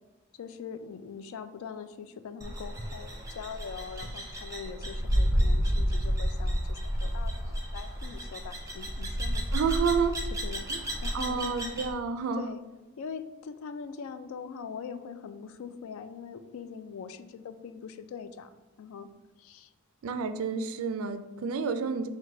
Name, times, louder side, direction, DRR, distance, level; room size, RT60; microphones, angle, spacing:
voice 1, 0.4-9.4 10.4-10.7 11.0-11.6 12.4-12.6 13.0-19.1 19.4-19.7, left 6 dB, 75° left, 11 dB, 0.3 m, -42 dB
sound 1, 2.4-11.9, equal, 15° right, 0.5 m, -30 dB
voice 2, 9.5-10.2 10.7-10.8 11.1-12.5 20.0-22.1, right 5 dB, 75° right, 9 dB, 0.3 m, -29 dB
4.7 x 2.2 x 3.7 m, 1.1 s
head